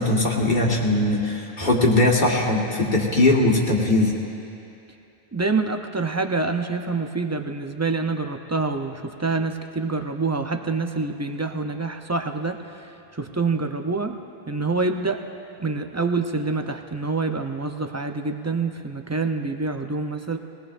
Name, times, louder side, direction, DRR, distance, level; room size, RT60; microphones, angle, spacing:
voice 1, 0.0-4.1, left 2 dB, 50° left, -2 dB, 1.8 m, -20 dB
voice 2, 5.3-14.2 14.5-15.2 15.6-20.4, right 3 dB, 25° right, 5 dB, 0.4 m, -26 dB
21.5 x 18.5 x 2.5 m, 2.7 s
omnidirectional pair, 1.0 m